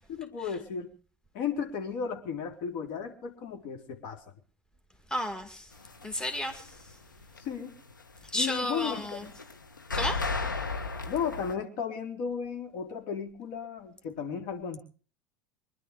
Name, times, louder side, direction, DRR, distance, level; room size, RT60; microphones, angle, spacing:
voice 1, 0.1-0.9 1.3-4.2 7.4-7.8 8.3-9.3 11.1-14.8, left 7 dB, 50° left, 3.7 m, -34 dB
voice 2, 5.1-5.7 6.0-6.7 8.2-9.2 9.9-10.2, left 1 dB, 5° left, 2.3 m, -32 dB
sound 1, 5.8-6.9 7.2-11.5, left 3 dB, 85° left, 1.6 m, -34 dB
24.5 x 11.5 x 5.0 m
figure-of-eight pair, 75°, 10 cm